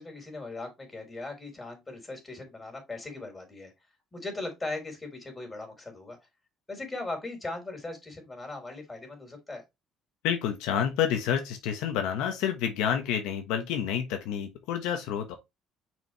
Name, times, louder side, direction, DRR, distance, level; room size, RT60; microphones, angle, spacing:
voice 1, 0.0-3.7 4.1-6.2 6.7-9.6, left 2 dB, 20° left, 3.9 m, -39 dB
voice 2, 10.2-15.4, left 9 dB, 85° left, 1.2 m, -29 dB
6.2 x 4.8 x 3.1 m
cardioid pair, 110°, 0 cm